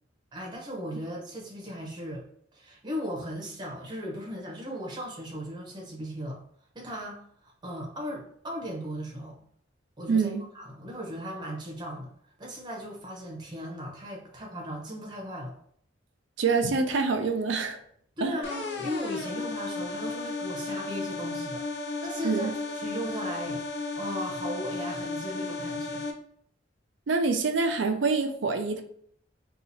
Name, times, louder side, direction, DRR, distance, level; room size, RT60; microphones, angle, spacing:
voice 1, 0.3-2.2 2.5-6.4 6.7-9.4 10.0-12.1 12.4-15.5 18.2-21.6 22.0-23.6 24.0-26.1, equal, 25° right, -1 dB, 0.7 m, -37 dB
voice 2, 10.1-10.4 16.4-17.8 18.2-18.4 22.2-22.5 27.1-28.8, right 4 dB, 75° right, 6 dB, 0.5 m, -26 dB
sound 1, 18.4-26.1, left 3 dB, 65° left, 0.5 m, -34 dB
2.8 x 2.4 x 3.9 m, 0.63 s
head